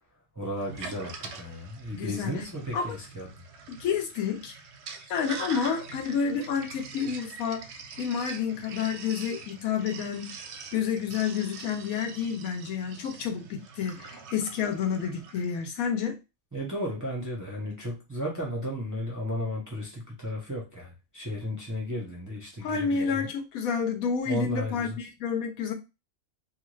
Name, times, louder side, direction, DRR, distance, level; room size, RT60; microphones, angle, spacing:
voice 1, 0.4-3.4 16.5-23.3 24.2-25.0, equal, 20° right, 0.5 m, -34 dB
Sink (filling or washing), 0.6-15.6, right 5 dB, 65° right, 0.7 m, -44 dB
voice 2, 1.9-2.3 2.7-3.0 3.7-4.5 5.1-7.6 8.0-10.4 10.7-16.2 22.6-25.7, left 6 dB, 85° left, 1.1 m, -29 dB
2.5 x 2.4 x 3.1 m
omnidirectional pair, 1.4 m